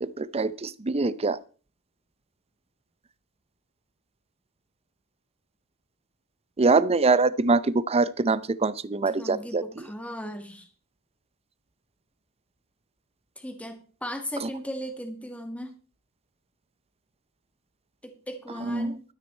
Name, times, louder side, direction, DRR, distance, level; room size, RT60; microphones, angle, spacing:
voice 1, 0.0-1.4 6.6-9.6 18.7-18.9, right 3 dB, 25° right, 17 dB, 0.6 m, -24 dB
voice 2, 9.1-10.7 13.4-15.8 18.0-19.0, equal, 5° left, 5 dB, 1.9 m, -37 dB
12.5 x 9.7 x 4.4 m, 0.38 s
head